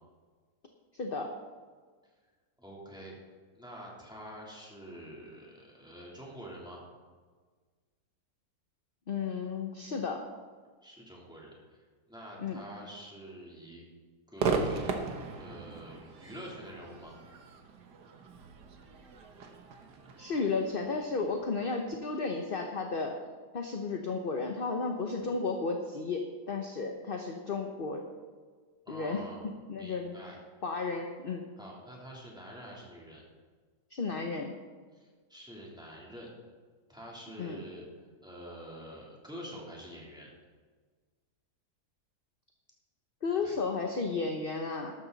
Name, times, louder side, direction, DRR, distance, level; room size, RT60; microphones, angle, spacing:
voice 1, 0.9-1.3 9.1-10.2 12.4-12.6 20.2-23.1 23.5-28.0 28.9-29.2 29.7-30.1 30.6-31.4 33.9-34.5 37.4-37.6 43.2-44.9, left 4 dB, 40° left, 3 dB, 1.0 m, -33 dB
voice 2, 2.6-3.1 3.5-6.8 10.8-13.8 14.3-14.9 15.4-17.1 25.0-25.2 28.8-29.5 29.8-30.4 31.6-33.2 34.9-36.3 36.9-37.8 38.2-40.3 43.4-43.5, equal, ahead, -4 dB, 3.1 m, -47 dB
Crowd / Fireworks, 14.4-21.7, right 4 dB, 85° right, 1.7 m, -37 dB
13.5 x 12.5 x 4.0 m, 1.5 s
omnidirectional pair, 1.7 m